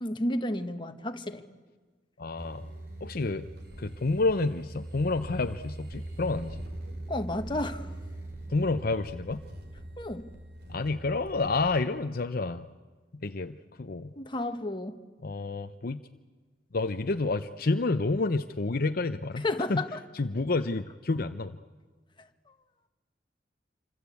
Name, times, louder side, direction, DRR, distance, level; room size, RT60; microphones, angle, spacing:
voice 1, 0.0-1.4 7.1-7.9 10.0-10.3 14.2-15.0 19.4-20.0 22.2-22.3, left 1 dB, 25° left, 7 dB, 1.4 m, -32 dB
voice 2, 2.2-2.7 3.0-3.5 3.8-6.6 8.5-9.4 10.7-12.7 13.2-14.1 15.2-16.0 16.7-19.4 19.7-19.8 20.2-21.5, left 3 dB, 55° left, 9 dB, 0.7 m, -29 dB
sound 1, 2.4-11.8, right 1 dB, 65° right, 4.9 m, -42 dB
27.5 x 25.5 x 8.4 m, 1.4 s
head